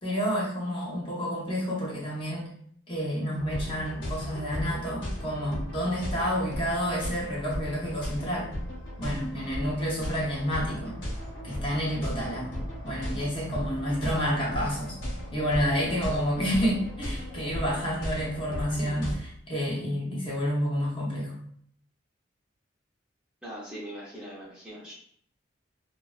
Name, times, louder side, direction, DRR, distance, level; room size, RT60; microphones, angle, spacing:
voice 1, 0.0-2.5 2.9-8.5 9.0-11.0 11.4-15.0 15.3-21.3, equal, 30° left, -5 dB, 0.7 m, -29 dB
sound 1, 3.4-19.2, equal, 65° left, 0.9 m, -36 dB
voice 2, 23.4-24.9, equal, 5° right, -8 dB, 0.6 m, -41 dB
2.6 x 2.2 x 2.3 m, 0.62 s
head